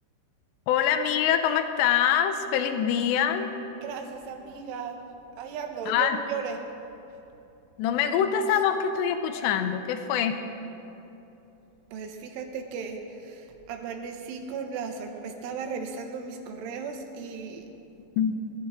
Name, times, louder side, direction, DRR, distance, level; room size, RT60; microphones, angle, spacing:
voice 1, 0.7-3.5 5.9-6.2 7.8-10.4 18.2-18.4, left 8 dB, 80° left, 8 dB, 2.8 m, -24 dB
voice 2, 3.8-5.0 5.4-6.7 11.9-17.7, right 5 dB, 90° right, 4 dB, 3.6 m, -36 dB
20.5 x 15.0 x 3.7 m, 2.9 s
omnidirectional pair, 5.5 m